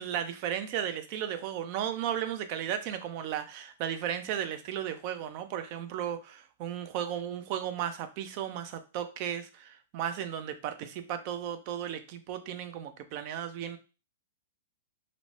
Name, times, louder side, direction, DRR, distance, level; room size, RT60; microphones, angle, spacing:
voice 1, 0.0-13.8, right 10 dB, 45° right, 9 dB, 0.4 m, -35 dB
2.5 x 2.1 x 3.1 m, 0.33 s
hypercardioid pair, 125°, 0 cm